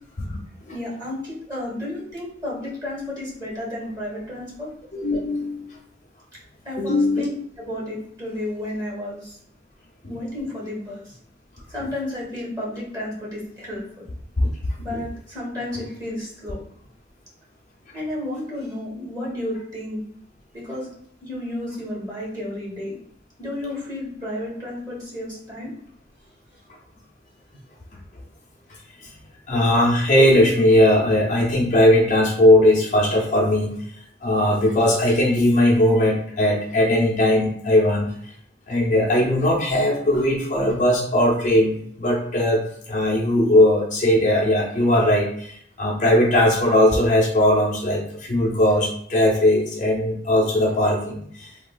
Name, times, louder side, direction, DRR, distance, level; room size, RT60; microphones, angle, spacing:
voice 1, 0.7-4.7 6.6-7.3 7.6-9.4 10.1-11.0 11.7-13.8 14.8-16.6 17.9-20.0 20.5-20.9 21.2-22.9 23.4-25.7, left 1 dB, 20° right, -5 dB, 1.0 m, -32 dB
voice 2, 4.9-5.7 6.8-7.4 10.0-10.1 14.4-14.5 14.9-15.0 29.5-33.7 34.2-38.1 38.7-51.5, left 1 dB, 40° left, -3 dB, 0.5 m, -19 dB
3.1 x 2.3 x 2.2 m, 0.65 s
head